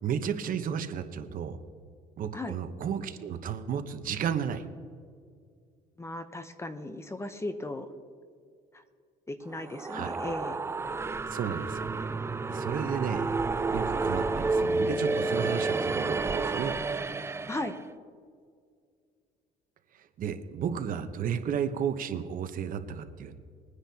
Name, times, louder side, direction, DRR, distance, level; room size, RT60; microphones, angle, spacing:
voice 1, 0.0-1.6 2.2-4.6 9.9-10.1 11.3-11.9 12.5-13.2 13.7-16.7 20.2-23.4, right 8 dB, 55° right, 8 dB, 1.0 m, -33 dB
voice 2, 6.0-7.9 8.7-8.8 9.3-10.6 17.5-17.8, left 2 dB, 15° left, 9 dB, 0.8 m, -36 dB
sound 1, 9.5-17.8, right 3 dB, 15° right, 0.4 m, -30 dB
21.0 x 9.8 x 2.9 m, 2.2 s
cardioid pair, 110°, 17 cm